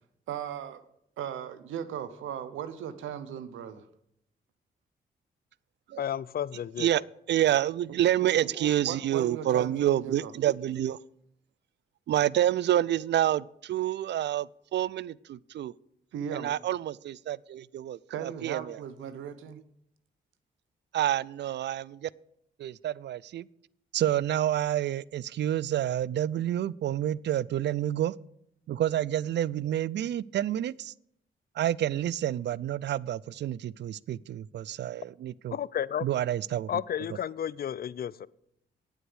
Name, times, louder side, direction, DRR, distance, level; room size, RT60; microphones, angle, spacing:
voice 1, 0.3-0.8 1.2-3.9 7.9-10.3 16.1-16.5 18.1-19.6, right 9 dB, 85° right, 0.9 m, -38 dB
voice 2, 6.0-6.9 35.5-36.1 36.7-38.3, left 9 dB, 50° left, 0.5 m, -32 dB
voice 3, 7.3-11.0 12.1-15.7 16.3-18.8 20.9-22.1 22.6-23.5 23.9-28.1 28.7-30.9 31.6-35.6 36.0-36.7, right 12 dB, 60° right, 0.4 m, -28 dB
9.0 x 8.1 x 7.9 m
supercardioid pair, 55°, 20 cm